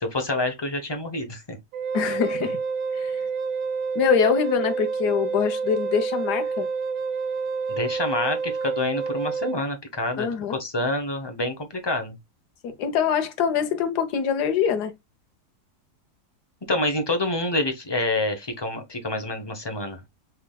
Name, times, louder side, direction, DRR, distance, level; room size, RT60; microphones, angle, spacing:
voice 1, 0.0-1.6 7.7-12.1 16.7-20.0, left 2 dB, 30° left, 0.5 m, -27 dB
Wind instrument woodwind instrument, 1.7-9.6, right 5 dB, 70° right, 1.2 m, -28 dB
voice 2, 1.9-2.6 2.9-3.2 3.9-6.7 10.2-10.6 12.6-14.9, left 7 dB, 80° left, 1.4 m, -24 dB
5.9 x 3.5 x 2.2 m
omnidirectional pair, 1.7 m